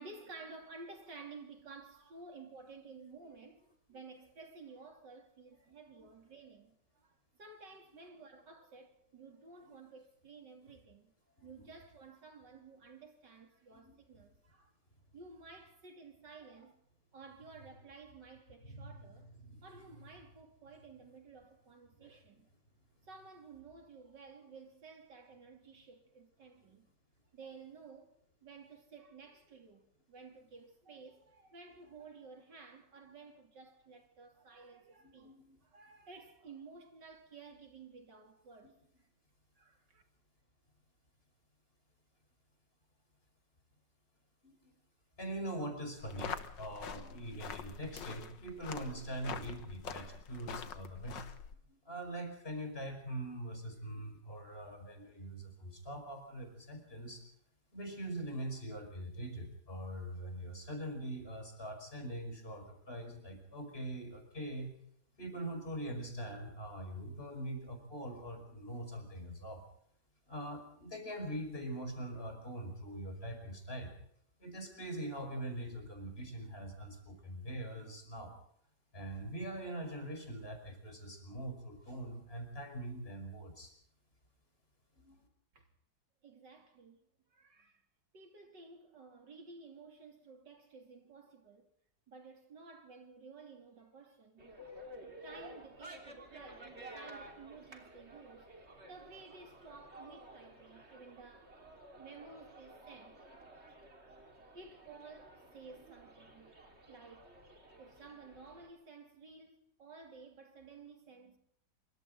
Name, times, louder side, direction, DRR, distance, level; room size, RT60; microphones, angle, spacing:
voice 1, 0.0-14.7 15.1-16.8 17.1-19.3 19.6-22.5 23.0-26.9 27.3-28.1 28.4-35.4 35.6-38.8 39.6-40.0 85.5-85.7 86.2-87.0 87.3-87.8 88.1-91.7 92.1-94.5 95.0-98.5 98.8-101.6 102.0-103.2 104.5-106.5 106.9-107.4 107.8-111.4, right 4 dB, 75° right, 3.7 m, -54 dB
voice 2, 11.4-11.7 13.7-13.9 18.6-20.0 22.0-22.1 35.0-35.6 44.4-44.7 45.2-51.3 51.7-57.2 57.7-64.7 65.2-69.6 70.3-74.0 74.4-78.3 78.9-83.7 85.0-85.2, right 1 dB, 30° left, 5.7 m, -43 dB
sound 1, 46.0-51.6, left 7 dB, 85° left, 2.0 m, -45 dB
sound 2, 94.4-108.7, right 1 dB, 35° right, 3.5 m, -54 dB
27.0 x 24.5 x 3.9 m
omnidirectional pair, 1.9 m